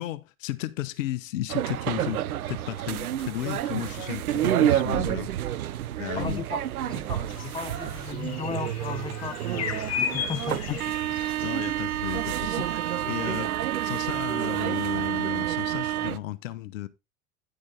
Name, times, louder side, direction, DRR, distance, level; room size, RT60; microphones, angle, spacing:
voice 1, 0.0-2.2 2.5-5.3 6.0-6.4 10.7-10.8 11.4-13.5 13.8-16.9, left 14 dB, 65° left, 0.9 m, -34 dB
sound 1, 1.5-16.2, right 12 dB, 80° right, 0.6 m, -29 dB
voice 2, 6.1-10.8, left 6 dB, 10° left, 0.8 m, -36 dB
sound 2, 7.3-13.4, left 7 dB, 35° left, 2.0 m, -36 dB
10.0 x 6.4 x 3.8 m
figure-of-eight pair, 80°, 43 cm